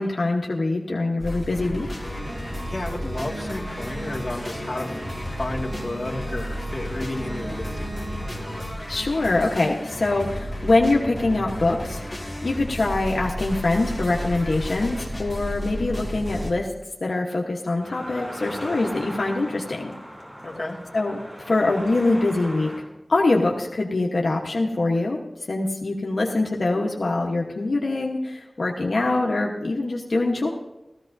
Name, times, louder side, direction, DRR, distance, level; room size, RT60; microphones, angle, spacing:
voice 1, 0.0-1.9 8.9-16.7 17.0-19.9 20.9-21.2 21.5-22.7 23.1-25.2 25.5-30.5, left 2 dB, 85° left, -1 dB, 1.1 m, -24 dB
sound 1, 1.2-16.5, equal, 15° left, 2.0 m, -33 dB
sound 2, 2.0-8.7, right 1 dB, 70° right, 3.2 m, -37 dB
voice 2, 2.7-5.0 5.4-8.2 20.4-20.8, left 1 dB, 40° left, -1 dB, 2.0 m, -32 dB
sound 3, 17.8-22.8, equal, 30° right, 3.7 m, -38 dB
16.5 x 14.5 x 2.7 m, 0.96 s
wide cardioid pair, 60°, 0 cm